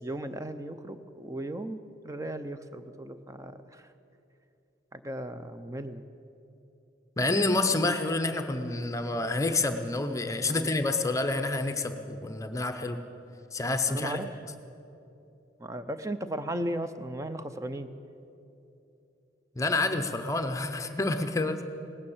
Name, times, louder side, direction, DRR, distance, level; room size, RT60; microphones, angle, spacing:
voice 1, 0.0-3.9 4.9-6.0 10.5-10.7 13.9-14.3 15.6-17.9, right 1 dB, 15° right, 10 dB, 0.5 m, -36 dB
voice 2, 7.2-13.0 13.5-14.2 19.6-21.6, left 2 dB, 15° left, 7 dB, 0.7 m, -28 dB
18.5 x 9.5 x 7.2 m, 2.8 s
head